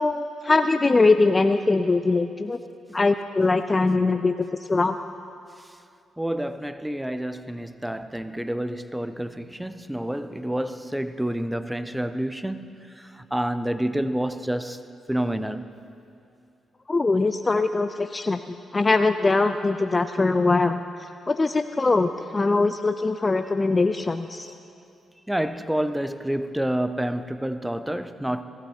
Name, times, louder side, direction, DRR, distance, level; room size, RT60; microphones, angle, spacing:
voice 1, 0.0-2.6 2.9-5.0 16.9-24.5, left 3 dB, 30° left, 9 dB, 0.4 m, -22 dB
voice 2, 6.2-12.6 13.0-14.8 15.1-15.6 25.3-28.4, right 1 dB, 5° right, 12 dB, 0.7 m, -28 dB
15.5 x 15.0 x 4.5 m, 2.5 s
hypercardioid pair, 40°, 0 cm